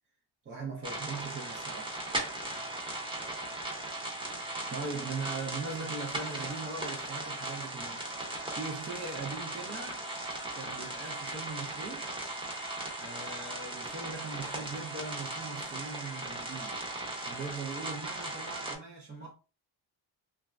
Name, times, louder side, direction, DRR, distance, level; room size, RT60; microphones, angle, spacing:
voice 1, 0.5-1.9 4.3-8.1 8.5-10.1 10.5-12.1 13.0-16.8 17.2-19.3, right 4 dB, 30° right, 0.3 m, -40 dB
sound 1, 0.8-18.7, right 2 dB, 10° right, 0.7 m, -38 dB
3.0 x 2.2 x 2.3 m
cardioid pair, 155°, 46 cm